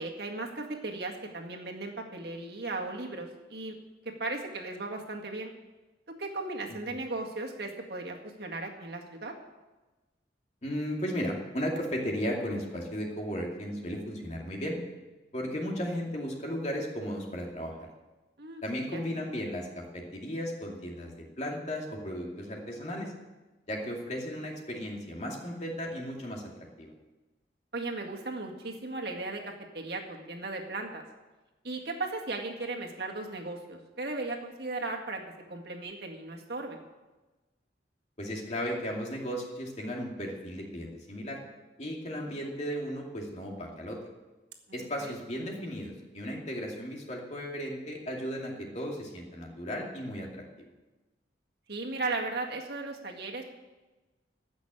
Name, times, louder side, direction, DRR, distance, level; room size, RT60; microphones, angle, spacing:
voice 1, 0.0-3.7 4.2-5.5 6.2-9.3 18.4-18.6 18.9-19.0 27.7-31.0 31.6-35.2 35.5-36.8 44.7-45.1 51.7-53.4, right 2 dB, 60° right, 1 dB, 1.9 m, -36 dB
voice 2, 10.6-14.8 15.3-17.9 18.6-23.1 23.7-26.5 26.8-26.9 38.2-41.4 41.8-44.0 44.7-50.4, equal, 40° left, 0 dB, 2.6 m, -35 dB
15.5 x 6.3 x 9.9 m, 1.1 s
head